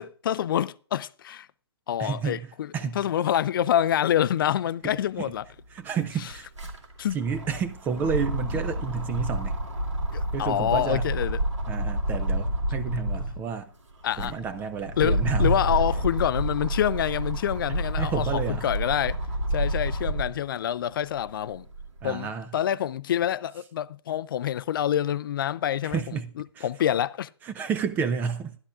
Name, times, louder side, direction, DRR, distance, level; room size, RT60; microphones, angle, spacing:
voice 1, 0.0-1.5 1.9-2.7 3.0-5.4 7.0-7.2 10.1-11.4 14.0-14.3 15.0-19.2 19.5-21.7 22.0-26.0 26.6-27.3, left 10 dB, 50° left, 0.4 m, -26 dB
voice 2, 2.0-3.0 4.8-5.3 5.7-6.5 7.1-9.6 10.3-11.1 11.7-13.7 14.2-15.6 18.0-18.7 22.0-22.5 25.8-26.7 27.4-28.6, right 6 dB, 10° right, 0.4 m, -31 dB
sound 1, 5.3-5.4 5.6-13.4 13.9-20.4 20.9-22.1, right 1 dB, 90° right, 2.8 m, -29 dB
13.0 x 11.5 x 2.4 m
hypercardioid pair, 140°, 15 cm